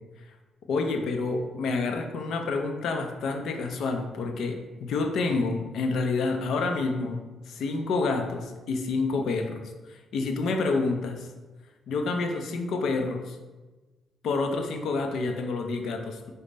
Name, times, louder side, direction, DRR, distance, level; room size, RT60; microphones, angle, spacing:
voice 1, 0.7-7.2 7.5-9.6 9.9-11.3 11.9-13.4 14.2-16.3, left 3 dB, 70° left, 5 dB, 0.5 m, -28 dB
5.1 x 2.1 x 3.9 m, 1.2 s
cardioid pair, 90°, 0 cm